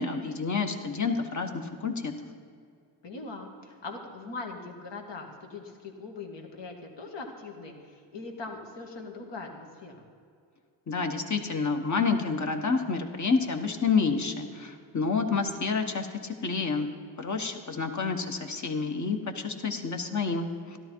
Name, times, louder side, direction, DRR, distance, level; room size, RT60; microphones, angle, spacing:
voice 1, 0.0-2.1 10.9-16.9 17.2-20.8, left 4 dB, 35° left, 5 dB, 1.4 m, -29 dB
voice 2, 3.0-9.9, left 3 dB, 60° left, 2 dB, 2.2 m, -41 dB
12.5 x 12.0 x 4.6 m, 2.3 s
cardioid pair, 70°, 48 cm